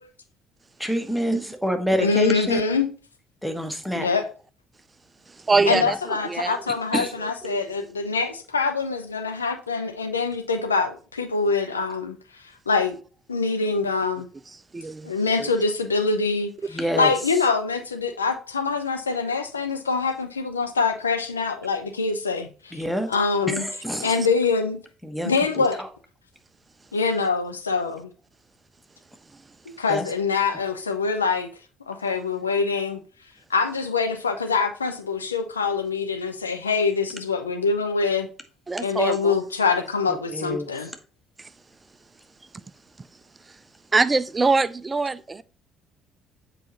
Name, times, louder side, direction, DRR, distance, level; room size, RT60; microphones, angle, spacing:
voice 1, 0.8-2.6 3.4-4.1 5.5-5.8 6.9-7.1 16.7-17.1 22.7-23.1 23.5-24.1 25.0-25.9 29.9-30.0 40.3-40.7, equal, ahead, 1.2 m, -27 dB
voice 2, 2.0-2.9 3.9-4.3 5.7-12.2 12.7-13.0 13.3-14.3 15.0-16.5 17.0-22.8 23.1-23.7 24.0-24.8 25.2-25.8 26.9-28.1 29.7-31.5 31.9-33.0 33.5-38.3 38.8-40.9, left 4 dB, 85° left, 0.6 m, -24 dB
voice 3, 5.3-6.6 7.4-7.6 14.5-15.5 16.9-17.1 24.0-24.1 38.7-39.4 41.4-41.5 43.5-43.6 43.9-45.4, right 3 dB, 25° right, 0.4 m, -25 dB
7.5 x 4.9 x 2.8 m
figure-of-eight pair, 50°, 0 cm